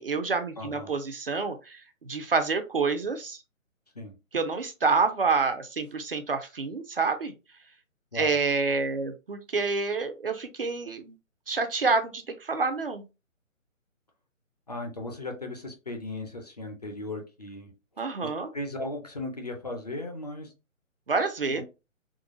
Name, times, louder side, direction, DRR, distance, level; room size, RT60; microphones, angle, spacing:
voice 1, 0.0-3.4 4.3-7.3 8.1-11.2 11.5-13.0 18.0-18.5 21.1-21.6, right 4 dB, 45° right, 8 dB, 0.5 m, -28 dB
voice 2, 0.6-0.9 4.0-4.1 8.1-8.4 14.7-17.7 18.5-20.5 21.5-21.6, left 2 dB, 30° left, 3 dB, 0.5 m, -36 dB
3.7 x 2.3 x 2.5 m, 0.27 s
figure-of-eight pair, 140°, 40 cm